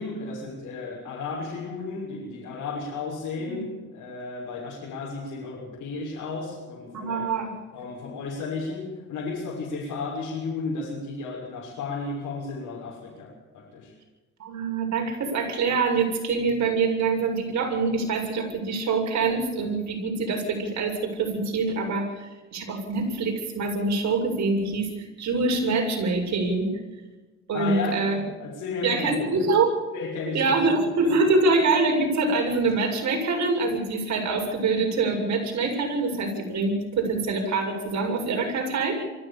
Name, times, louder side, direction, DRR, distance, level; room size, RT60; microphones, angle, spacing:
voice 1, 0.0-7.3 7.7-13.9 27.5-29.5 29.9-30.6 31.0-31.1, left 4 dB, 75° left, -4 dB, 6.5 m, -34 dB
voice 2, 6.9-7.5 14.4-26.7 27.5-28.2 28.8-29.8 30.3-39.0, right 3 dB, 65° right, 1 dB, 7.5 m, -25 dB
24.0 x 15.0 x 7.2 m, 1.2 s
cardioid pair, 90°, 30 cm